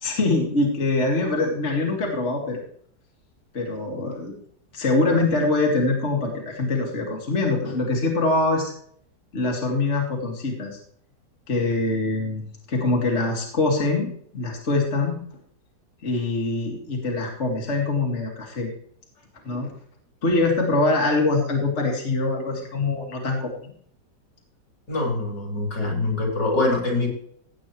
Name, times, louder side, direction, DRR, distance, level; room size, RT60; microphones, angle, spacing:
voice 1, 0.0-2.6 3.5-4.3 4.7-8.7 9.3-10.8 11.5-15.2 16.0-18.7 19.4-19.7 20.2-23.7, left 2 dB, 40° left, -1 dB, 2.4 m, -24 dB
voice 2, 24.9-27.1, left 2 dB, 75° left, 0 dB, 4.3 m, -24 dB
16.5 x 8.8 x 3.2 m, 0.62 s
omnidirectional pair, 1.9 m